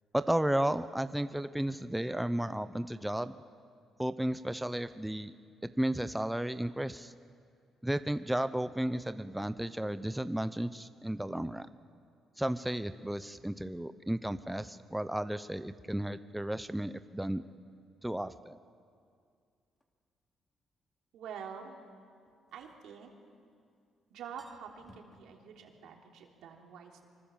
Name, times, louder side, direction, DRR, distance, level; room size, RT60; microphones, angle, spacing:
voice 1, 0.1-3.3 4.0-5.3 5.6-7.1 7.8-11.7 12.4-17.4 18.0-18.6, right 1 dB, 5° right, 11 dB, 0.8 m, -33 dB
sound 1, 19.8-19.9 22.3-23.6 23.9-24.0 24.2-25.2, left 1 dB, 10° left, 2.6 m, -61 dB
voice 2, 21.1-21.8 22.5-23.1 24.1-27.1, right 7 dB, 85° right, 1 dB, 3.5 m, -47 dB
24.5 x 24.5 x 7.4 m, 2.3 s
cardioid pair, 90°, 0 cm